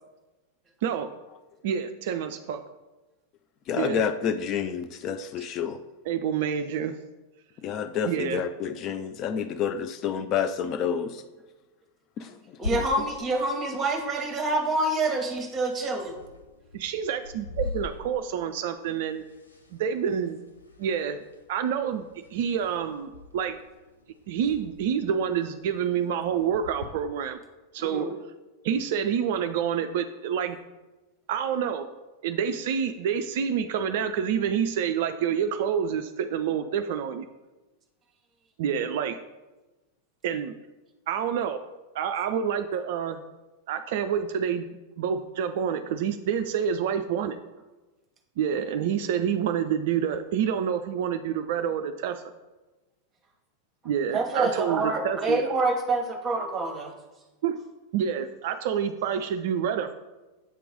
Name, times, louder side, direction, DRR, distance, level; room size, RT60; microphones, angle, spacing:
voice 1, 1.6-2.6 3.7-4.0 6.0-7.0 8.1-8.4 16.7-19.3 19.7-20.4 20.8-21.2 21.5-23.6 24.3-27.4 27.7-28.1 28.6-30.6 31.3-31.9 32.2-37.3 38.6-39.2 40.2-40.5 41.1-41.6 41.9-43.2 43.7-44.7 45.0-47.4 48.4-52.2 53.8-55.4 57.4-57.6 57.9-59.9, right 8 dB, 50° right, 8 dB, 0.3 m, -28 dB
voice 2, 3.7-5.8 7.6-11.1, left 7 dB, 35° left, 9 dB, 0.3 m, -28 dB
sound 1, 12.6-26.9, left 3 dB, 80° left, 0.6 m, -43 dB
voice 3, 12.6-16.2 27.8-28.1 54.1-56.9, right 2 dB, 20° right, 3 dB, 1.1 m, -27 dB
7.6 x 3.0 x 5.1 m, 1.1 s
figure-of-eight pair, 90°, 0 cm